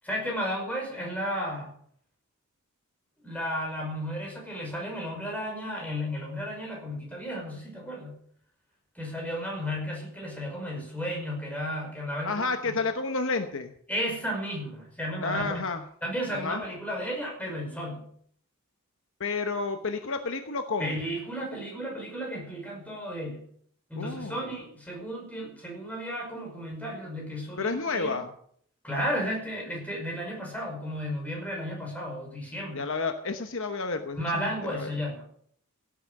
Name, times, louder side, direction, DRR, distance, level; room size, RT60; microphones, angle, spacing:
voice 1, 0.0-1.7 3.2-8.2 9.0-12.8 13.9-15.6 16.0-18.1 20.8-23.5 23.9-28.2 28.8-32.8 34.2-35.3, equal, 5° left, -1 dB, 5.7 m, -33 dB
voice 2, 12.2-13.7 15.2-15.8 16.3-16.6 19.2-21.0 24.0-24.5 27.6-28.3 32.7-34.9, left 4 dB, 60° left, 7 dB, 1.0 m, -31 dB
16.5 x 9.0 x 6.5 m, 0.62 s
head